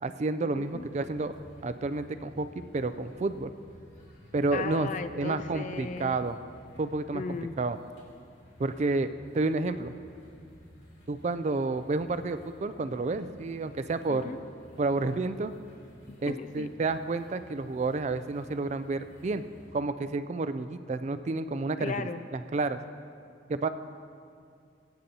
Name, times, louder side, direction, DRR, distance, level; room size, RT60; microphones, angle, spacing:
voice 1, 0.0-2.5 2.7-3.5 4.3-4.9 5.1-6.4 6.8-7.2 7.6-7.8 8.6-9.1 9.3-9.9 11.1-14.2 14.8-15.5 16.2-19.4 19.7-22.8 23.5-23.7, right 3 dB, 35° right, 11 dB, 0.4 m, -30 dB
sound 1, 0.5-19.7, equal, 85° left, 2.9 m, -54 dB
voice 2, 0.6-0.9 4.5-6.2 7.1-7.6 14.1-14.4 16.3-16.7 21.8-22.2, left 4 dB, 40° left, 11 dB, 0.3 m, -36 dB
20.0 x 9.1 x 2.8 m, 2.3 s
head